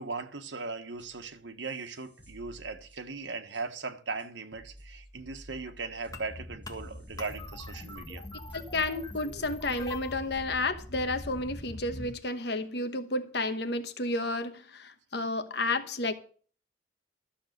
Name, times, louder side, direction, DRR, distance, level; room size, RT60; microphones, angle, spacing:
voice 1, 0.0-8.2, right 4 dB, 85° right, 1.4 m, -38 dB
sound 1, 0.9-1.3 1.6-3.2 3.5-3.6 4.2-4.3 4.5-8.2 8.5-8.6 9.1-9.2 9.5-10.4, equal, 10° right, 6.1 m, -54 dB
sound 2, 6.1-12.1, left 2 dB, 20° left, 1.5 m, -42 dB
voice 2, 8.5-16.1, left 2 dB, 65° left, 1.2 m, -31 dB
13.0 x 7.0 x 6.5 m
head